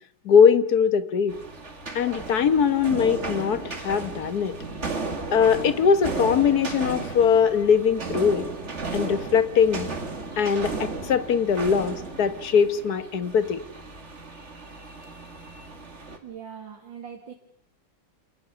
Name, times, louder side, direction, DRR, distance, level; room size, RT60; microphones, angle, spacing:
voice 1, 0.3-1.3 2.0-4.5 5.3-8.5 8.9-9.9 10.4-13.6, left 6 dB, 60° left, 13 dB, 1.7 m, -21 dB
sound 1, 1.3-16.2, right 3 dB, 40° right, 2.6 m, -35 dB
voice 2, 16.2-17.3, right 7 dB, 85° right, 3 dB, 2.7 m, -41 dB
28.0 x 20.0 x 6.9 m, 0.69 s
omnidirectional pair, 2.0 m